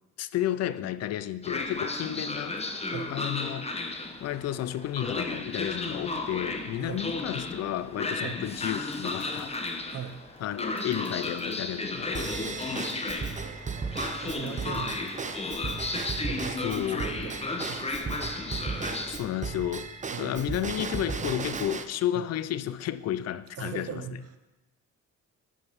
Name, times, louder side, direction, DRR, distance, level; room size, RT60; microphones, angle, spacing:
voice 1, 0.2-2.6 3.1-9.6 10.4-13.1 16.5-17.0 19.0-24.0, left 12 dB, 60° left, 14 dB, 0.5 m, -32 dB
Train, 1.4-19.1, left 2 dB, 20° left, 0.8 m, -34 dB
sound 1, 8.5-15.5, equal, 5° left, 1.7 m, -54 dB
voice 2, 9.9-10.2 13.4-13.9 14.2-15.4 16.2-18.3 20.1-20.6 22.1-22.3 23.6-24.4, right 8 dB, 50° right, 8 dB, 0.9 m, -40 dB
Drum kit / Drum / Bell, 12.1-21.8, right 5 dB, 25° right, 0.6 m, -36 dB
7.4 x 5.5 x 6.1 m, 1.1 s
cardioid pair, 90°, 30 cm